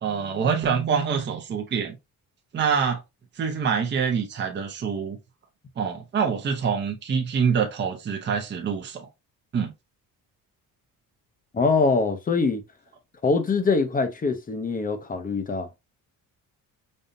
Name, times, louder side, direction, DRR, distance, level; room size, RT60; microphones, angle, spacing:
voice 1, 0.0-2.0 2.5-3.0 3.4-5.2 5.8-9.1 9.5-9.7, right 6 dB, 30° right, 0.7 m, -25 dB
voice 2, 11.5-12.6 13.2-15.8, left 4 dB, 25° left, 0.7 m, -23 dB
5.3 x 2.7 x 2.6 m
cardioid pair, 145°, 35 cm